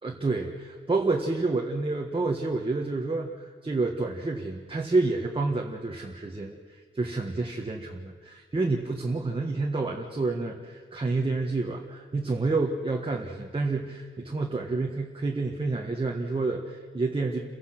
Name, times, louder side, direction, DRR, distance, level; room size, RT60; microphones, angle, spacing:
voice 1, 0.0-6.5 6.9-17.4, right 3 dB, 25° right, 0 dB, 1.5 m, -29 dB
29.0 x 16.5 x 6.0 m, 1.5 s
wide cardioid pair, 150°, 21 cm